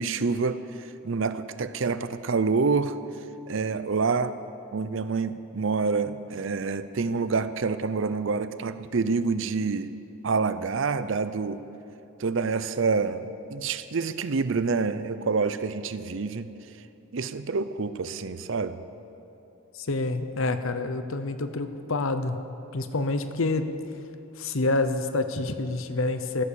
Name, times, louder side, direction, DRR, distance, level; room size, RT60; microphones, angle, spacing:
voice 1, 0.0-3.0 3.5-4.4 4.7-10.0 10.2-11.6 12.2-16.5 17.1-18.9, right 4 dB, 60° right, 13 dB, 0.5 m, -27 dB
voice 2, 19.7-22.4 22.7-23.7 24.3-26.4, left 2 dB, 65° left, 10 dB, 0.8 m, -27 dB
15.5 x 12.0 x 6.9 m, 2.9 s
head